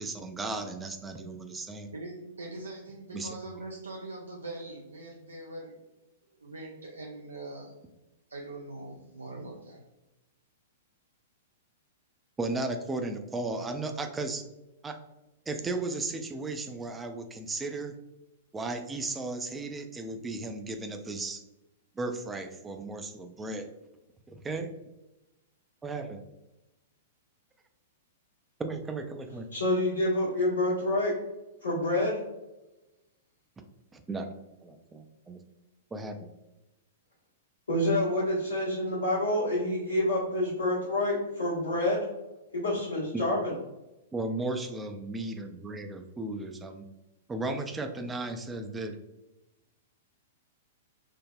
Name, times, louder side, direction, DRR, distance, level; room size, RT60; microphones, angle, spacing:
voice 1, 0.0-1.9 3.1-3.4 12.4-14.4 14.8-15.0 15.5-18.0 18.5-21.4 21.9-23.7 24.3-24.7 25.8-26.2 28.6-29.5 33.9-34.3 34.6-35.4 35.9-36.3 43.1-43.2 44.1-46.8 47.3-49.0, right 2 dB, 15° right, 6 dB, 0.3 m, -35 dB
voice 2, 1.9-5.8 6.4-7.7 8.3-9.8, right 2 dB, 85° right, -1 dB, 0.4 m, -42 dB
voice 3, 29.5-31.1 31.6-32.2 37.7-42.0 42.5-43.5, left 1 dB, 80° left, -9 dB, 1.0 m, -27 dB
3.3 x 2.0 x 2.3 m, 0.99 s
figure-of-eight pair, 105°, 0 cm